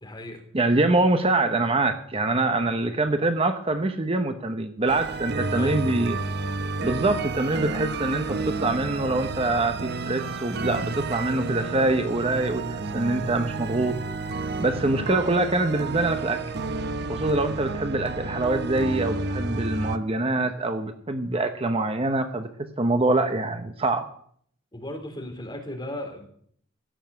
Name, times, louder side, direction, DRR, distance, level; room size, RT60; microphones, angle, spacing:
voice 1, 0.0-0.4 2.3-2.5 5.3-5.8 14.9-15.1 24.7-26.3, left 1 dB, 20° left, 3 dB, 3.3 m, -37 dB
voice 2, 0.5-6.2 6.8-14.2 14.6-16.4 17.1-22.5 22.8-24.1, right 2 dB, 30° right, 7 dB, 0.9 m, -24 dB
sound 1, 4.9-20.0, right 3 dB, 55° right, 0.8 m, -31 dB
16.5 x 7.2 x 8.1 m, 0.62 s
head